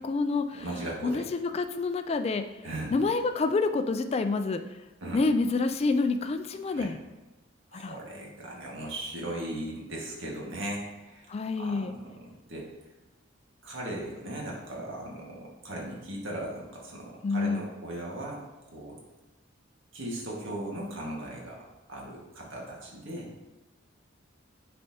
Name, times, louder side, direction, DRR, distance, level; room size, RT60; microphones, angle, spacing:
voice 1, 0.0-0.7 1.0-2.4 2.9-4.6 5.1-7.0 7.7-8.0 11.3-11.9 17.2-17.6, left 3 dB, 30° left, 9 dB, 0.3 m, -27 dB
voice 2, 0.5-1.2 2.6-2.9 5.0-5.2 6.7-6.9 7.7-12.7 13.6-18.4 18.7-19.0 19.9-21.6 21.9-23.3, right 1 dB, 75° right, -2 dB, 1.7 m, -38 dB
9.7 x 4.3 x 2.8 m, 1.1 s
head